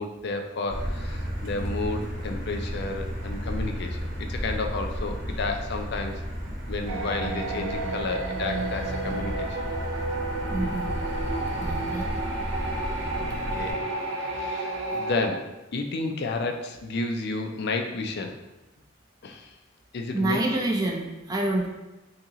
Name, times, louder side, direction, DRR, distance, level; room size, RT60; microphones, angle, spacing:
voice 1, 0.0-4.0 4.3-6.2 6.7-9.6 13.1-13.9 14.2-18.4 19.2-19.5 19.9-20.4, left 3 dB, 55° left, 4 dB, 0.4 m, -31 dB
Motor vehicle (road), 0.7-13.7, equal, 45° right, 0.9 m, -33 dB
sound 1, 6.9-15.3, right 2 dB, 90° right, 0.5 m, -31 dB
voice 2, 10.5-11.0 11.6-12.1 20.1-21.7, right 2 dB, 20° right, -1 dB, 0.3 m, -27 dB
2.8 x 2.8 x 3.6 m, 1.0 s
head